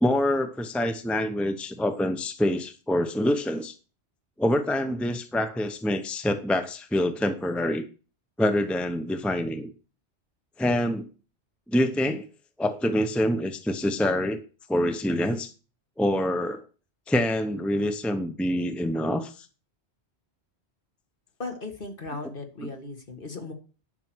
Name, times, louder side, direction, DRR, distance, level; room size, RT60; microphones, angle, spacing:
voice 1, 0.0-3.7 4.4-7.8 8.4-9.7 10.6-11.1 11.7-12.2 12.6-14.4 14.7-15.5 16.0-16.6 17.1-19.5 22.6-22.7, left 1 dB, ahead, 7 dB, 0.8 m, -26 dB
voice 2, 21.4-23.5, left 2 dB, 50° left, 4 dB, 2.1 m, -37 dB
11.0 x 6.1 x 6.2 m, 0.36 s
omnidirectional pair, 1.1 m